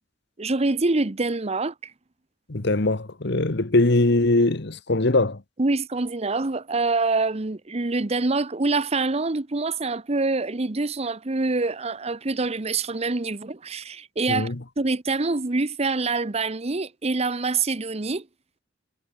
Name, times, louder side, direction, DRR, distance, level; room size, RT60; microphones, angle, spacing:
voice 1, 0.4-1.9 5.6-18.3, right 3 dB, 35° right, 0.9 m, -25 dB
voice 2, 2.5-5.4 14.3-14.6, left 2 dB, 60° left, 1.4 m, -21 dB
head